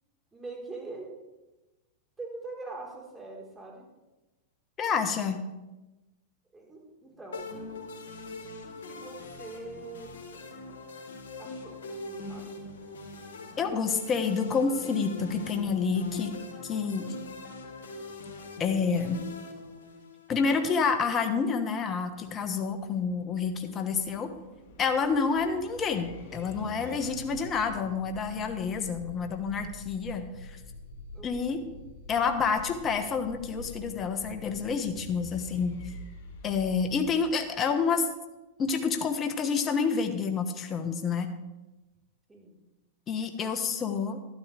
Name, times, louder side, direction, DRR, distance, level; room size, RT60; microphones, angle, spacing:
voice 1, 0.3-1.1 2.2-3.8 6.5-8.1 8.4-10.2 11.4-11.8 12.1-12.5 31.1-31.8 42.3-42.6, right 3 dB, 15° right, -2 dB, 4.2 m, -43 dB
voice 2, 4.8-5.4 13.6-16.3 16.6-17.1 18.6-19.2 20.3-24.3 24.8-30.6 31.2-31.7 32.1-35.8 36.4-38.1 38.6-41.3 43.1-44.2, left 5 dB, 30° left, 7 dB, 1.3 m, -28 dB
sound 1, 7.3-20.4, left 3 dB, 80° left, 2.3 m, -42 dB
sound 2, 22.1-37.9, left 2 dB, 55° left, 2.7 m, -47 dB
12.5 x 12.0 x 3.4 m, 1.1 s
hypercardioid pair, 110°, 0 cm